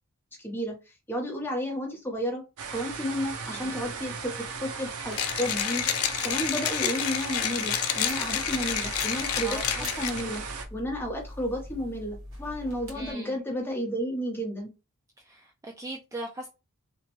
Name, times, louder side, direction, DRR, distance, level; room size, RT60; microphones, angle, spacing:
voice 1, 0.4-0.8 1.1-2.4 2.7-10.4 10.7-14.7, equal, 10° left, 0.8 m, -32 dB
sound 1, 2.6-10.6, right 5 dB, 85° right, 0.5 m, -37 dB
Mechanisms, 5.1-10.4, left 10 dB, 70° left, 0.4 m, -29 dB
sound 2, 8.1-13.1, equal, 60° right, 1.3 m, -43 dB
voice 2, 9.4-9.9 12.9-13.3 15.2-16.5, right 1 dB, 15° right, 0.3 m, -39 dB
3.0 x 2.1 x 3.0 m
head